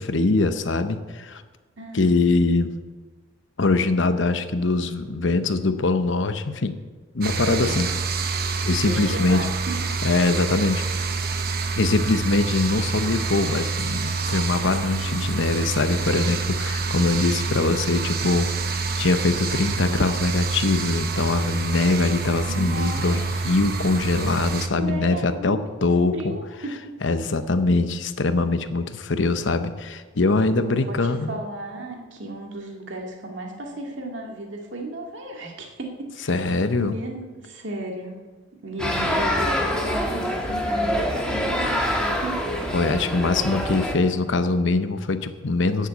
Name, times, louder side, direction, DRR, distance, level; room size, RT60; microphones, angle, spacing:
voice 1, 0.0-1.4 1.9-2.7 3.6-6.7 7.1-7.9 8.6-9.5 10.0-10.9 11.8-26.3 27.0-31.4 36.3-36.9 42.7-45.9, left 3 dB, 70° left, 10 dB, 0.8 m, -23 dB
voice 2, 1.8-2.1 7.6-7.8 8.8-9.5 22.5-23.2 24.8-25.7 26.1-26.9 30.4-38.2 38.6-42.4, right 1 dB, 65° right, 1 dB, 2.1 m, -34 dB
sound 1, 7.2-24.7, right 4 dB, 50° right, 0.9 m, -27 dB
sound 2, 38.8-44.0, equal, 5° left, 1.6 m, -25 dB
11.0 x 7.5 x 8.3 m, 1.4 s
head